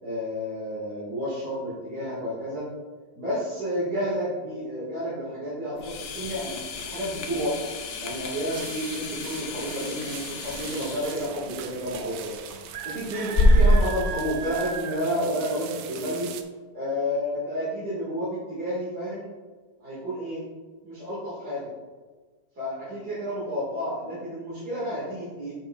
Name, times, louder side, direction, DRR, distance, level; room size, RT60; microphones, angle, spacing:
voice 1, 0.0-2.6 3.2-6.5 6.8-7.7 8.0-16.3 16.7-19.3 19.8-20.4 20.8-21.7 22.6-25.6, equal, 65° right, -9 dB, 2.6 m, -31 dB
sound 1, 5.8-14.0, left 1 dB, 65° left, 0.6 m, -27 dB
sound 2, 8.5-16.4, right 8 dB, 85° right, 1.2 m, -39 dB
8.6 x 6.0 x 2.4 m, 1.4 s
omnidirectional pair, 1.8 m